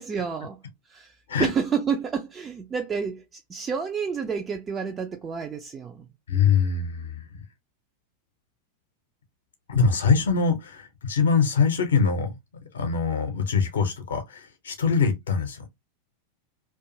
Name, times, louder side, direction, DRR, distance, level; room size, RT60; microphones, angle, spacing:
voice 1, 0.0-6.1, right 6 dB, 20° right, 0.3 m, -30 dB
voice 2, 6.3-7.4 9.7-12.3 12.7-15.7, left 5 dB, 65° left, 0.6 m, -23 dB
2.4 x 2.3 x 2.7 m
figure-of-eight pair, 90°, 0 cm